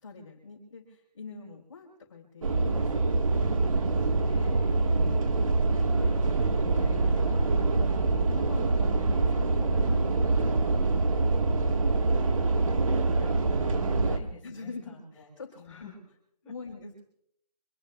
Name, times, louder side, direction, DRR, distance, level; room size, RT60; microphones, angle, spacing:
voice 1, 0.0-3.1 3.9-4.4 5.9-6.2 7.5-7.9 8.2-11.9 14.4-15.9 16.4-17.0, left 4 dB, 40° left, -2 dB, 4.8 m, -45 dB
sound 1, 2.4-14.2, right 3 dB, 55° right, 1.7 m, -25 dB
voice 2, 4.2-5.0 5.9-7.5 8.8-9.2 13.1-15.2 15.7-16.0 16.4-16.5, left 5 dB, 5° left, -7 dB, 5.7 m, -49 dB
26.5 x 22.5 x 2.4 m, 0.72 s
hypercardioid pair, 170°, 20 cm